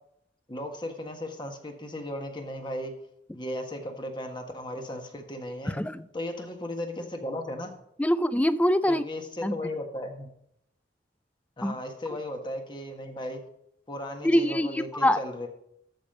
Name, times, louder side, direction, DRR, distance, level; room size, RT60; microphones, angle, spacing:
voice 1, 0.5-2.9 3.3-5.8 6.1-7.8 8.9-10.3 11.6-13.4 13.9-15.5, left 1 dB, 25° left, 4 dB, 1.5 m, -36 dB
voice 2, 8.0-9.0 9.4-9.5 11.6-11.7 14.2-15.2, equal, 10° left, 15 dB, 0.4 m, -24 dB
13.5 x 5.2 x 5.3 m, 0.74 s
head